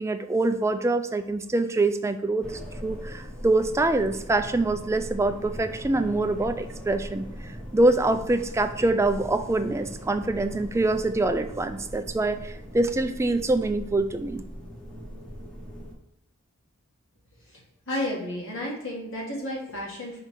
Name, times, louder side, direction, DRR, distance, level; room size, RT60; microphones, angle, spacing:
voice 1, 0.0-7.3 7.7-14.4, right 2 dB, 10° right, 9 dB, 0.3 m, -25 dB
sound 1, 2.4-15.9, equal, 5° left, 1.0 m, -40 dB
voice 2, 17.9-20.2, left 1 dB, 60° left, -3 dB, 2.0 m, -32 dB
5.4 x 3.8 x 4.6 m, 0.83 s
head